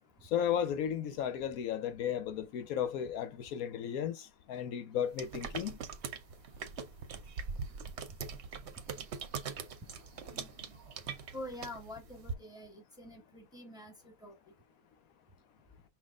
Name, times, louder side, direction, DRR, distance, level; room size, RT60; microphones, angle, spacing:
voice 1, 0.3-5.8, left 9 dB, 75° left, 1.1 m, -34 dB
sound 1, 5.1-12.3, right 6 dB, 55° right, 0.9 m, -42 dB
voice 2, 11.3-14.3, left 1 dB, 5° right, 1.2 m, -46 dB
5.9 x 2.4 x 3.5 m
omnidirectional pair, 1.5 m